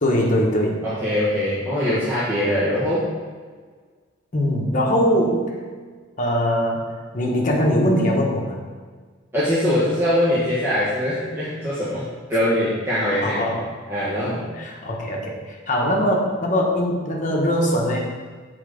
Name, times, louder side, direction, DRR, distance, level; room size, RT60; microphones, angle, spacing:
voice 1, 0.0-0.8 4.3-5.6 6.2-8.6 13.2-13.7 14.6-18.0, equal, 40° left, -1 dB, 1.1 m, -21 dB
voice 2, 0.8-3.0 9.3-12.0 12.3-13.4 13.9-14.5, left 1 dB, 10° right, -10 dB, 1.3 m, -22 dB
7.3 x 3.9 x 5.1 m, 1.5 s
head